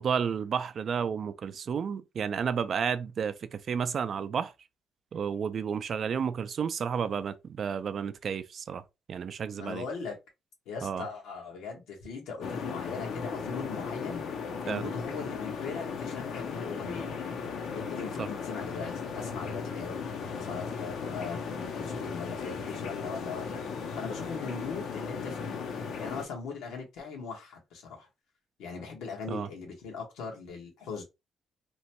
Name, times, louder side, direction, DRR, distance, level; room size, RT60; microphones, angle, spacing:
voice 1, 0.0-4.5 5.1-8.8 9.1-9.9 10.8-11.0 14.7-14.9 18.2-18.3 29.3-29.5, right 7 dB, 55° right, 0.3 m, -31 dB
voice 2, 9.6-10.2 10.7-14.2 14.6-17.2 17.7-23.6 23.9-25.6 26.0-28.1 28.6-31.0, left 5 dB, 90° left, 1.2 m, -39 dB
sound 1, 12.4-26.3, left 5 dB, 75° left, 0.6 m, -36 dB
3.0 x 2.1 x 2.9 m
cardioid pair, 90°, 0 cm